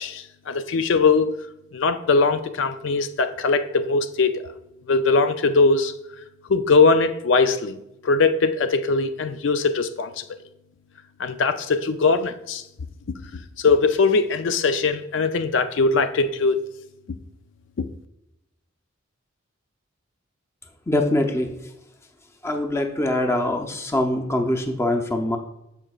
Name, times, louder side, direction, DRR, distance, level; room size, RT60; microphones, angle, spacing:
voice 1, 0.0-1.3 1.7-4.4 4.9-5.9 6.5-7.8 8.0-10.2 11.2-12.6 13.6-16.6 17.8-17.9, left 4 dB, 65° left, 9 dB, 0.4 m, -20 dB
voice 2, 20.9-21.5 22.4-25.4, left 1 dB, 15° left, 3 dB, 0.6 m, -23 dB
14.0 x 4.9 x 2.4 m, 0.86 s
head